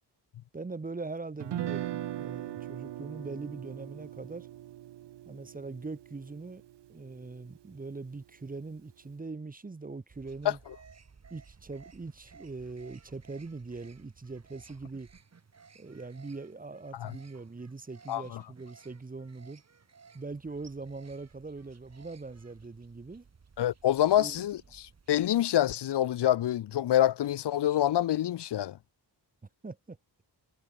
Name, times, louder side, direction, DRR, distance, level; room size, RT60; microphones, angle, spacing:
voice 1, 0.5-4.5 5.3-6.6 6.9-10.6 11.3-15.1 15.8-19.6 20.1-23.2 24.2-24.4 29.6-30.0, right 3 dB, 20° right, 1.2 m, -41 dB
Guitar, 1.4-7.5, right 13 dB, 75° right, 0.7 m, -40 dB
sound 1, 10.1-25.4, right 5 dB, 35° right, 2.9 m, -58 dB
voice 2, 18.1-18.4 23.6-28.8, left 12 dB, 70° left, 0.7 m, -26 dB
wide cardioid pair, 160°, 42 cm